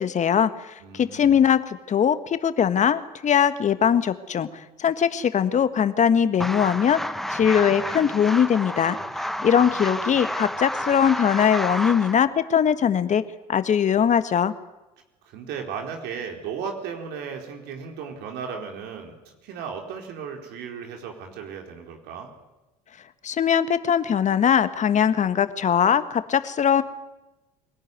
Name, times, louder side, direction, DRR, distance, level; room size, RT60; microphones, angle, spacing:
voice 1, 0.0-7.0 7.3-13.2 13.5-14.5 23.2-26.8, left 8 dB, 40° left, 12 dB, 1.6 m, -21 dB
voice 2, 0.8-1.4 15.2-22.3, right 6 dB, 60° right, 3 dB, 4.2 m, -35 dB
sound 1, 6.4-12.1, equal, ahead, 1.0 m, -30 dB
24.5 x 17.5 x 9.6 m, 1.0 s
hypercardioid pair, 70°, 19 cm